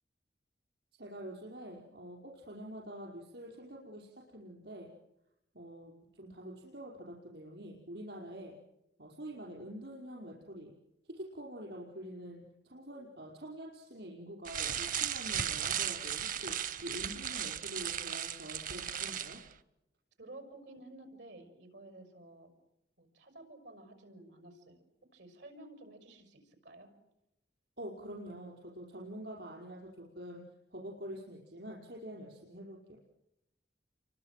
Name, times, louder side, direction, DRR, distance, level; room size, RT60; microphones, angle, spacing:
voice 1, 1.0-4.9 5.5-8.6 9.0-10.7 11.1-16.5 16.8-19.4 27.8-30.4 30.7-33.0, right 1 dB, 70° right, -2 dB, 5.3 m, -46 dB
sound 1, 14.5-19.5, right 9 dB, 50° right, 0.9 m, -36 dB
voice 2, 20.2-22.5 23.0-24.8 25.1-26.9, right 2 dB, 90° right, 9 dB, 6.4 m, -52 dB
29.5 x 24.5 x 7.7 m, 0.87 s
head